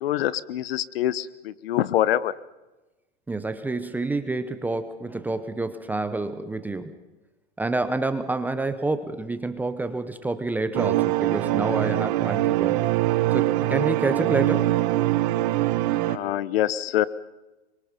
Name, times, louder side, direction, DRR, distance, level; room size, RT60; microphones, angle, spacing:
voice 1, 0.0-2.3 16.1-17.0, left 12 dB, 60° left, 17 dB, 1.1 m, -25 dB
voice 2, 3.3-6.9 7.6-12.8 13.3-14.7, right 2 dB, 5° right, 10 dB, 0.8 m, -28 dB
sound 1, 10.7-16.2, right 15 dB, 40° right, 1.3 m, -23 dB
26.5 x 24.5 x 5.2 m, 1.1 s
hypercardioid pair, 150°, 33 cm